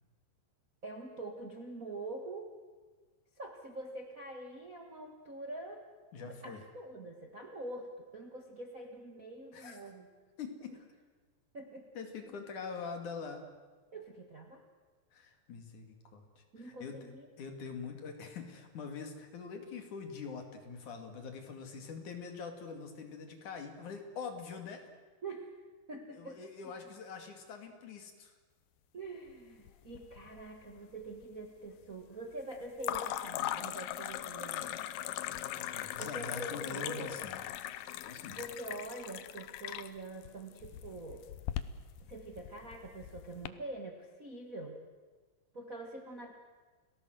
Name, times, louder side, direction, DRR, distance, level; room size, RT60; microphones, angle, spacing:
voice 1, 0.8-2.5 3.4-5.8 6.2-10.1 11.5-11.9 13.9-14.6 16.5-17.3 25.2-25.5 25.9-26.4 28.9-34.7 36.0-37.2 38.3-41.3 42.0-44.8 45.5-46.3, right 2 dB, 85° right, 3 dB, 0.7 m, -45 dB
voice 2, 6.1-6.6 9.5-9.8 10.4-10.7 11.9-13.5 15.1-17.0 17.4-24.9 26.1-28.3 35.2-37.5 38.0-38.4, left 5 dB, 50° left, 5 dB, 3.4 m, -44 dB
sound 1, 29.7-30.4 30.7-31.3 32.8-43.5, left 12 dB, 75° left, 2.2 m, -40 dB
29.5 x 18.0 x 7.9 m, 1.4 s
omnidirectional pair, 4.9 m